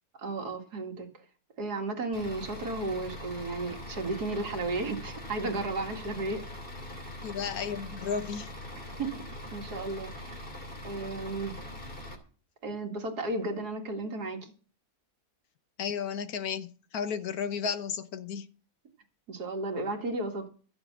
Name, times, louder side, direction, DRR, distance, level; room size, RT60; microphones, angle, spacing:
voice 1, 0.2-1.1 1.6-6.4 7.0-7.2 9.0-10.4 10.8-11.6 12.6-14.5 19.3-20.5, right 2 dB, 90° right, 2.6 m, -34 dB
Bus / Idling, 2.1-12.1, left 1 dB, 35° left, 2.9 m, -42 dB
voice 2, 7.1-8.5 15.8-18.5, left 6 dB, 70° left, 1.5 m, -33 dB
13.5 x 7.9 x 7.4 m
omnidirectional pair, 1.6 m